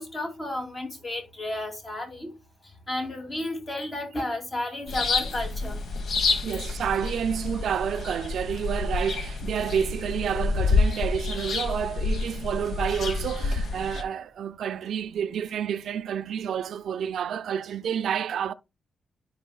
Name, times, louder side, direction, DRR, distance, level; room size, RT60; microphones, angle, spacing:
voice 1, 0.0-2.3 2.9-5.8, left 1 dB, 30° left, 2.3 m, -32 dB
sound 1, 4.9-14.0, left 4 dB, 60° left, 1.1 m, -28 dB
voice 2, 6.4-18.5, right 8 dB, 80° right, 0.4 m, -29 dB
13.5 x 4.7 x 2.2 m
wide cardioid pair, 140°, 0 cm